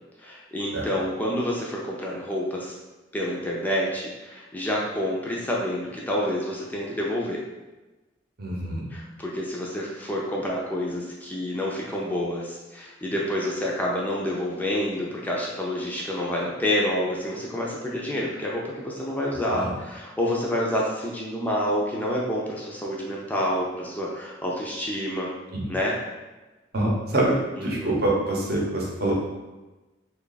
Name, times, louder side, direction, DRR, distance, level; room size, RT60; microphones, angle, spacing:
voice 1, 0.2-2.7 3.1-7.4 8.9-25.3 25.7-25.9 27.6-27.9, equal, 10° left, -4 dB, 0.4 m, -28 dB
voice 2, 8.4-8.8 19.5-19.7 25.5-25.7 26.7-29.1, right 1 dB, 55° right, -3 dB, 0.8 m, -25 dB
3.0 x 2.3 x 3.9 m, 1.1 s
head